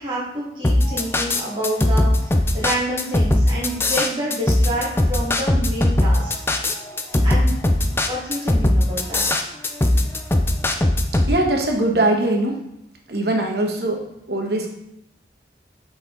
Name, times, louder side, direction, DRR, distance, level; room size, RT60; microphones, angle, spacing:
voice 1, 0.0-6.3 7.2-9.3, equal, 25° right, -8 dB, 2.0 m, -28 dB
sound 1, 0.6-11.3, left 1 dB, 15° left, 0.4 m, -19 dB
voice 2, 11.3-12.6 13.1-14.8, right 1 dB, 60° right, 2 dB, 1.1 m, -21 dB
7.3 x 4.2 x 3.9 m, 0.82 s
head